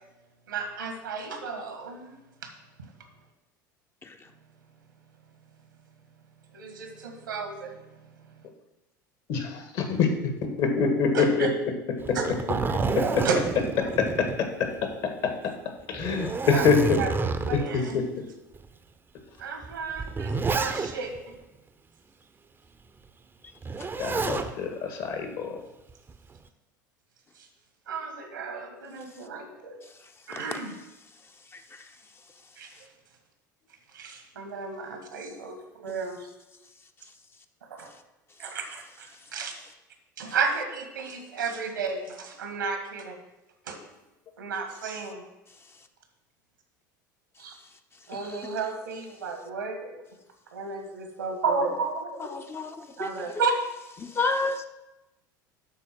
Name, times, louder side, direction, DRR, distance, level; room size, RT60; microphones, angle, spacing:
voice 1, 0.5-2.2 6.5-7.7 11.1-11.5 12.1-12.3 13.0-13.9 16.5-17.1 17.4-18.0 19.4-21.4 27.9-29.7 30.3-30.8 32.6-32.8 33.9-36.3 37.7-37.9 38.4-39.5 40.2-43.2 43.7-43.8 44.4-45.2 47.4-47.5 48.1-49.9 50.5-52.2 53.0-53.5, right 5 dB, 80° right, 4 dB, 1.7 m, -33 dB
voice 2, 9.3-10.3 10.6-11.5 12.1-12.2 13.0-13.2 13.8-14.5 14.8-15.5 15.9-17.0 17.5-18.0 24.0-25.6, left 5 dB, 50° left, 5 dB, 1.8 m, -25 dB
Zipper (clothing), 12.0-14.9 15.3-15.4 15.9-17.8 18.5-18.7 19.6-21.2 23.6-24.5 25.9-26.4, right 4 dB, 20° right, 0.8 m, -29 dB
voice 3, 52.2-53.1 54.0-54.6, left 3 dB, 20° left, 7 dB, 0.8 m, -30 dB
11.0 x 4.3 x 6.1 m, 0.98 s
figure-of-eight pair, 75°, 11 cm